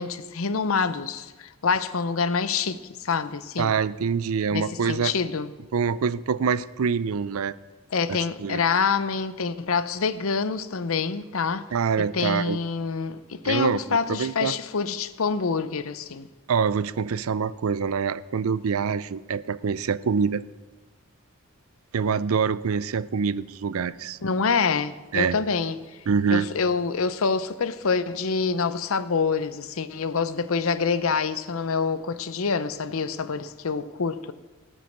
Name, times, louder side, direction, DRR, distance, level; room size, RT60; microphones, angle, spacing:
voice 1, 0.0-3.7 4.5-5.5 7.9-11.7 12.0-16.3 24.2-25.8 26.3-34.3, left 5 dB, 70° left, 0.7 m, -26 dB
voice 2, 3.6-5.1 5.7-7.6 8.1-8.6 11.7-12.6 13.4-13.8 14.1-14.6 16.5-20.4 21.9-24.2 25.1-25.4 26.1-26.5, right 6 dB, 70° right, 0.4 m, -25 dB
18.0 x 6.4 x 6.5 m
head